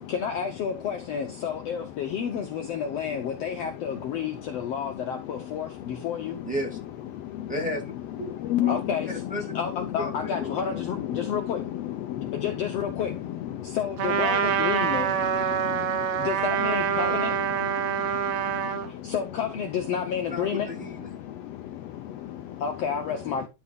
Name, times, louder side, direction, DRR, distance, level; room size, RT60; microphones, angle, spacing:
voice 1, 0.0-6.4 8.7-9.1 9.5-11.6 12.2-13.2 13.6-15.1 16.2-17.3 18.9-20.7 22.6-23.5, left 7 dB, 65° left, 1.7 m, -30 dB
voice 2, 6.4-6.8 7.5-8.3 8.6-8.8 9.1-9.4 10.0-10.8 16.9-17.2 20.3-21.1, equal, 5° right, 2.5 m, -34 dB
voice 3, 7.2-7.5 8.5-8.7 11.1-11.3 12.0-12.3 13.6-13.8 15.5-16.3 17.8-19.1 21.2-22.6, left 13 dB, 80° left, 1.5 m, -33 dB
Trumpet, 14.0-18.9, right 8 dB, 65° right, 2.3 m, -26 dB
12.0 x 4.6 x 3.6 m
omnidirectional pair, 3.6 m